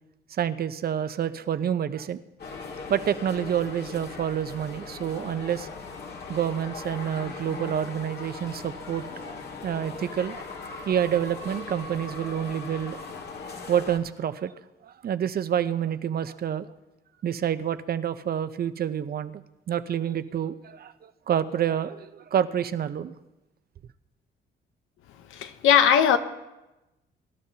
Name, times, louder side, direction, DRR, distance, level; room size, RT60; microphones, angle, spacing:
voice 1, 0.4-2.2 2.9-5.7 6.3-9.4 9.6-10.4 10.9-13.0 13.7-14.5 14.8-16.7 17.2-19.4 19.7-23.2, right 9 dB, 50° right, 0.7 m, -28 dB
sound 1, 2.4-14.0, left 4 dB, 55° left, 1.9 m, -39 dB
voice 2, 25.3-26.2, left 8 dB, 90° left, 0.9 m, -19 dB
22.5 x 12.0 x 2.8 m
cardioid pair, 90°, 20 cm